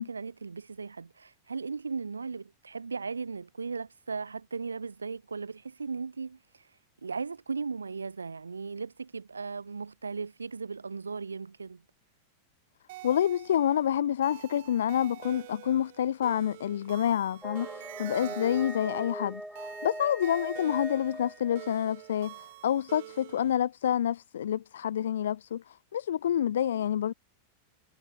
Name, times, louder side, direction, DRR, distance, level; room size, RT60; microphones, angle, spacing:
voice 1, 0.0-6.4 7.0-11.8 18.2-18.4, right 4 dB, 75° right, 1.3 m, -37 dB
sound 1, 12.9-23.6, right 19 dB, 50° right, 2.4 m, -47 dB
voice 2, 13.0-27.1, left 10 dB, 65° left, 0.7 m, -28 dB
sound 2, 17.4-22.1, right 1 dB, ahead, 3.1 m, -41 dB
figure-of-eight pair, 90°, 0 cm